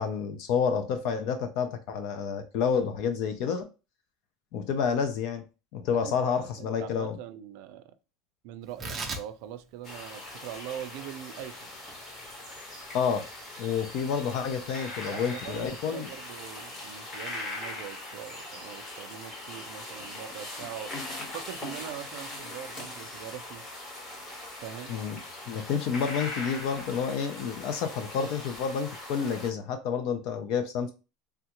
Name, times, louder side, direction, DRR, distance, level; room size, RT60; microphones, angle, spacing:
voice 1, 0.0-3.7 4.5-5.4 5.7-7.1 12.9-13.3 13.6-16.1 24.9-25.2 25.5-30.9, left 6 dB, 50° left, 0.5 m, -29 dB
voice 2, 5.9-7.9 8.4-11.8 15.1-20.9 21.3-23.7 24.6-24.9, right 10 dB, 60° right, 0.4 m, -42 dB
Tearing, 8.6-15.4, right 3 dB, 15° right, 0.6 m, -43 dB
sound 1, 9.8-29.5, left 2 dB, 25° left, 0.9 m, -41 dB
3.4 x 2.4 x 2.9 m
cardioid pair, 170°, 0 cm